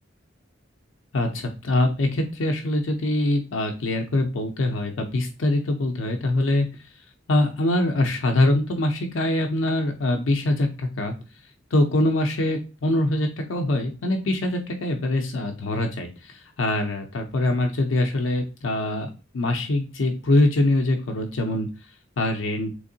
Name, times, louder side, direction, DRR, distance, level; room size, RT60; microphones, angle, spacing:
voice 1, 1.1-6.7 7.3-11.1 11.7-21.7 22.2-22.7, left 1 dB, 85° left, 3 dB, 0.5 m, -23 dB
3.5 x 3.1 x 2.6 m, 0.32 s
head